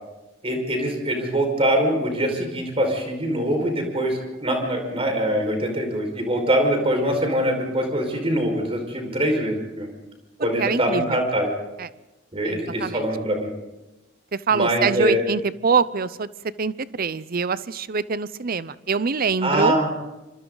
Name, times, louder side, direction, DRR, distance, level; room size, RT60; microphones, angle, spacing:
voice 1, 0.4-9.9 10.4-11.5 12.3-13.5 14.5-15.2 19.4-19.9, right 1 dB, 30° right, 3 dB, 5.3 m, -23 dB
voice 2, 10.6-11.2 11.8-11.9 12.5-13.0 14.5-16.3 16.6-19.8, right 5 dB, 50° right, 16 dB, 0.7 m, -24 dB
26.5 x 25.5 x 4.0 m, 1.0 s
head